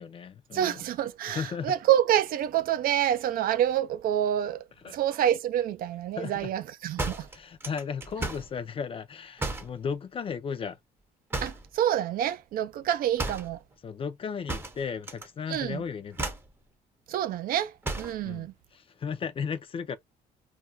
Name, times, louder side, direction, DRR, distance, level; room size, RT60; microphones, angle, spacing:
voice 1, 0.0-0.8 1.3-1.7 4.8-5.0 6.2-6.5 7.3-10.8 13.8-16.3 18.2-18.5 18.7-20.0, left 6 dB, 30° left, 0.4 m, -35 dB
voice 2, 0.5-4.6 4.9-7.3 11.4-13.6 15.5-15.8 17.1-17.7 18.0-18.5, right 11 dB, 60° right, 0.4 m, -27 dB
sound 1, 7.0-8.5 9.4-9.8 11.3-11.7 13.2-13.5 14.5-15.3 15.5-15.8 16.1-16.5 17.8-18.2, right 2 dB, 15° right, 0.6 m, -34 dB
2.4 x 2.1 x 3.8 m
cardioid pair, 110°, 17 cm